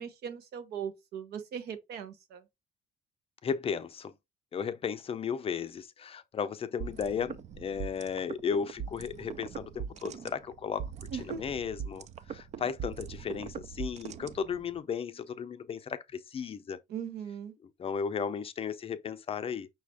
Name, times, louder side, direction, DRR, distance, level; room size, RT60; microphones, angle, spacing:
voice 1, 0.0-2.5 11.1-11.6 16.9-17.5, right 7 dB, 70° right, 1.0 m, -39 dB
voice 2, 3.4-4.1 4.5-10.9 11.4-16.8 17.8-19.7, left 6 dB, 35° left, 0.5 m, -35 dB
sound 1, 6.8-14.8, right 7 dB, 45° right, 0.4 m, -41 dB
5.6 x 2.4 x 3.3 m
cardioid pair, 110°, 17 cm